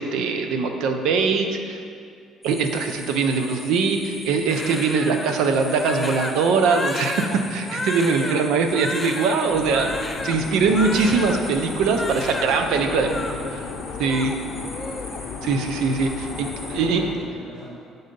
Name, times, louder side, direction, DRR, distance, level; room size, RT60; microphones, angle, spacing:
voice 1, 0.0-1.8 2.4-7.2 7.5-9.9 10.2-13.1 14.0-14.4 15.4-17.0, right 4 dB, 80° right, 5 dB, 0.5 m, -22 dB
sound 1, 2.4-16.7, equal, 15° right, 1.2 m, -42 dB
Crying sobbing, 4.5-11.5 11.8-12.6 12.8-13.3 13.8-15.2 15.5-15.7 16.0-16.5, left 2 dB, 15° left, 0.5 m, -32 dB
voice 2, 7.3-7.8 8.1-8.4 10.5-10.9 12.7-13.7 16.1-17.7, equal, 35° right, -9 dB, 1.8 m, -39 dB
sound 2, 9.5-17.1, left 5 dB, 65° left, 0.5 m, -35 dB
8.6 x 4.0 x 5.2 m, 2.3 s
cardioid pair, 120°, 0 cm